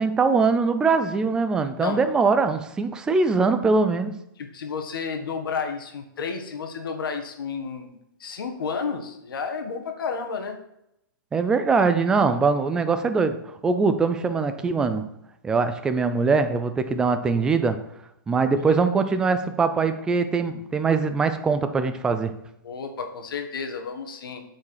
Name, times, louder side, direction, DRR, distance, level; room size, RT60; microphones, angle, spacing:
voice 1, 0.0-4.1 11.3-15.0 15.4-17.8 18.3-22.4, right 4 dB, 5° right, 9 dB, 0.4 m, -22 dB
voice 2, 1.8-2.1 4.4-10.6 18.7-18.9 22.6-24.4, left 5 dB, 75° left, 6 dB, 1.6 m, -32 dB
7.0 x 4.9 x 6.4 m, 0.80 s
hypercardioid pair, 160°, 12 cm